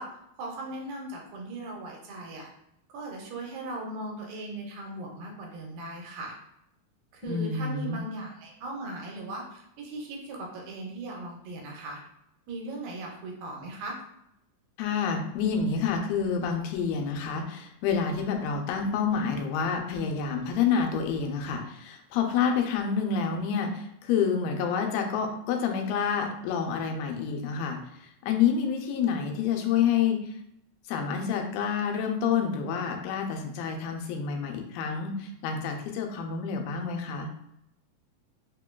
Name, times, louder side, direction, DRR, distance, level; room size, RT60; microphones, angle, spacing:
voice 1, 0.0-2.5 2.9-6.4 7.1-12.0 12.5-14.0, right 2 dB, 90° right, 0 dB, 2.5 m, -38 dB
voice 2, 7.2-8.0 14.8-30.2 30.9-37.3, left 6 dB, 90° left, 3 dB, 2.4 m, -28 dB
5.5 x 2.2 x 2.2 m, 0.78 s
omnidirectional pair, 4.1 m